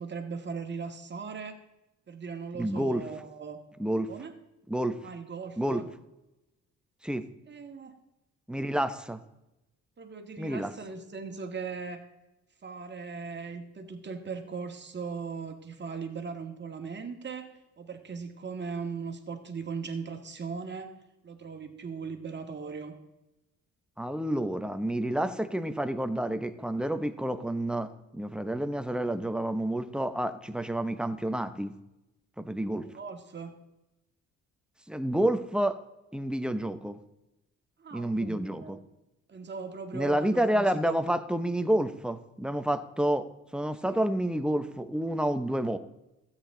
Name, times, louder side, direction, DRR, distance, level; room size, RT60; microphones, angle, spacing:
voice 1, 0.0-1.6 2.1-3.6 4.1-4.3 5.0-5.9 7.5-8.0 8.8-9.0 10.0-12.0 12.6-17.5 17.8-20.9 21.2-22.9 32.6-33.5 37.8-38.8 39.3-41.0 43.8-44.1, right 5 dB, 35° right, 4 dB, 1.8 m, -39 dB
voice 2, 2.5-3.0 3.8-4.1 4.7-5.0 5.6-5.8 7.0-7.3 8.5-9.2 10.4-10.7 24.0-31.7 32.4-32.9 34.9-35.8 36.1-37.0 37.9-38.8 39.9-43.3 43.5-45.8, right 1 dB, 5° right, 9 dB, 0.8 m, -29 dB
13.0 x 8.9 x 3.8 m, 0.95 s
cardioid pair, 90°, 30 cm